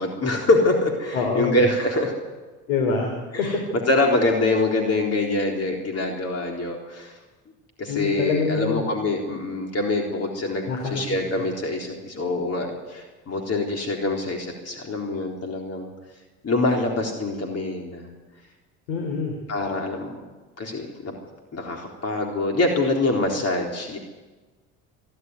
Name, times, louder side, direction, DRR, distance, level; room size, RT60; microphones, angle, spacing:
voice 1, 0.0-2.1 3.4-3.6 3.9-7.1 7.8-15.9 16.4-18.1 19.5-20.2 20.6-21.1 21.5-24.0, left 2 dB, 40° left, 2 dB, 3.8 m, -25 dB
voice 2, 1.1-1.6 2.7-3.6 7.9-8.9 10.6-11.0 18.9-19.3, left 4 dB, 90° left, 3 dB, 3.4 m, -25 dB
23.5 x 11.5 x 9.6 m, 1.3 s
supercardioid pair, 80°, 37 cm